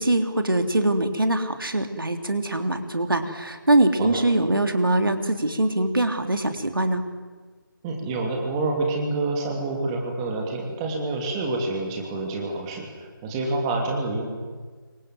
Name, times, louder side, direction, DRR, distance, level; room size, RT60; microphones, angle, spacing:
voice 1, 0.0-7.0, right 1 dB, 70° right, 7 dB, 3.2 m, -23 dB
voice 2, 7.8-14.4, right 2 dB, 15° right, 2 dB, 2.9 m, -27 dB
27.5 x 24.0 x 7.8 m, 1.5 s
figure-of-eight pair, 155°, 12 cm